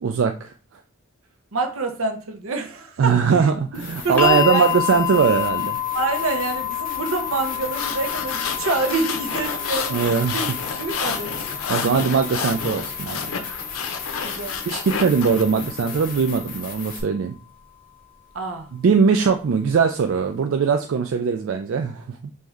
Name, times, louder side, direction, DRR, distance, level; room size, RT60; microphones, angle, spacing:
voice 1, 0.0-0.5 3.0-5.8 9.9-10.4 11.7-13.3 14.7-17.3 18.7-22.3, right 6 dB, 65° right, 5 dB, 0.3 m, -21 dB
voice 2, 1.5-4.6 5.9-10.5 10.8-11.3 14.2-14.6 18.3-18.7, right 3 dB, 80° right, 4 dB, 0.8 m, -27 dB
sound 1, 3.7-17.0, left 5 dB, 40° left, 0.7 m, -34 dB
sound 2, 4.2-16.3 17.3-17.4, left 11 dB, 10° left, 1.0 m, -30 dB
sound 3, 7.5-15.4, left 6 dB, 90° left, 0.5 m, -30 dB
3.2 x 2.6 x 3.5 m, 0.39 s
head